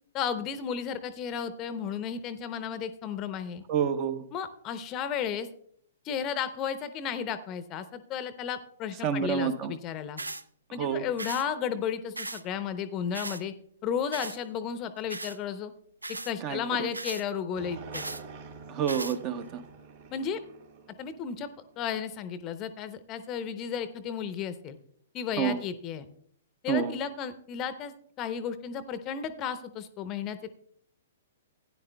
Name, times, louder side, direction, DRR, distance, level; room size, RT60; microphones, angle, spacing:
voice 1, 0.1-3.6 4.3-5.5 6.0-10.2 10.7-13.5 13.8-15.7 16.3-18.0 20.1-20.4 21.0-21.5 21.8-24.8 25.1-26.1 26.6-30.5, left 7 dB, 30° left, 12 dB, 0.7 m, -33 dB
voice 2, 3.7-4.2 9.0-9.7 10.7-11.1 16.4-16.9 18.7-19.6 25.4-25.6 26.7-27.0, right 7 dB, 30° right, 11 dB, 0.8 m, -29 dB
sound 1, 10.2-10.4 11.2-11.4 12.1-12.4 13.1-13.4 14.1-14.4 15.1-15.4 16.0-16.3 16.9-17.2 17.9-18.2 18.9-19.2, right 2 dB, 80° right, 0.4 m, -37 dB
sound 2, 17.5-21.9, right 5 dB, 50° right, 2.0 m, -47 dB
16.0 x 9.9 x 2.2 m, 0.63 s
figure-of-eight pair, 115°, 0 cm